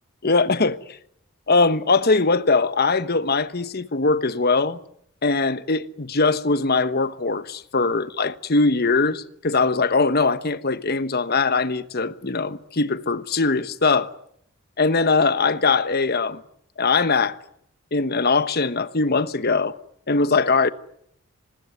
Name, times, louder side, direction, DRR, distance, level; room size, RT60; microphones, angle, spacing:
voice 1, 0.2-0.8 1.5-4.8 5.2-14.1 14.8-16.4 16.8-17.4 17.9-19.7 20.1-20.7, left 4 dB, 45° left, 1.1 m, -21 dB
26.5 x 20.5 x 9.5 m
head